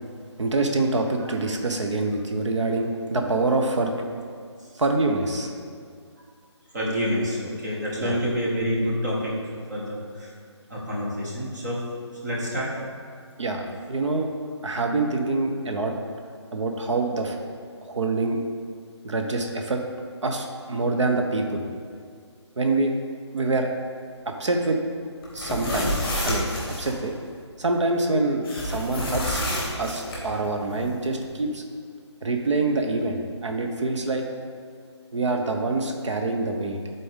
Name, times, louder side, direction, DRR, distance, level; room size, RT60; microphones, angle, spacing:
voice 1, 0.4-3.9 4.8-5.5 8.0-8.2 13.4-13.6 13.9-14.3 14.6-15.9 16.5-17.4 17.9-18.4 19.0-19.8 20.2-21.6 22.6-22.9 23.3-23.7 24.3-24.8 25.3-26.0 26.2-27.1 27.6-29.4 29.8-31.6 32.2-34.2 35.1-36.8, right 3 dB, 80° right, 3 dB, 0.9 m, -25 dB
voice 2, 6.7-9.3 9.7-10.3 10.7-11.8 12.2-12.7, equal, 40° right, -4 dB, 1.7 m, -27 dB
sound 1, 25.2-26.9 28.4-30.2, left 1 dB, 10° left, 1.4 m, -28 dB
10.5 x 4.2 x 3.7 m, 2.1 s
hypercardioid pair, 170°, 15 cm